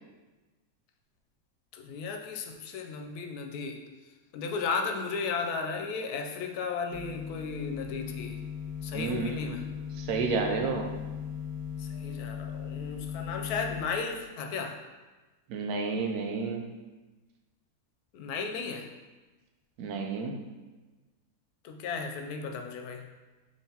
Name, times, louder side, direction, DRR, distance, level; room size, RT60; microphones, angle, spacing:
voice 1, 1.7-3.8 4.3-8.4 8.8-9.7 11.8-14.8 18.1-18.9 21.6-23.1, left 5 dB, 85° left, 4 dB, 1.1 m, -35 dB
sound 1, 6.9-13.8, left 7 dB, ahead, 1.3 m, -38 dB
voice 2, 8.9-9.5 10.0-10.9 15.5-16.7 19.8-20.4, right 4 dB, 80° right, 3 dB, 1.1 m, -31 dB
5.4 x 3.5 x 2.8 m, 1.2 s
omnidirectional pair, 1.6 m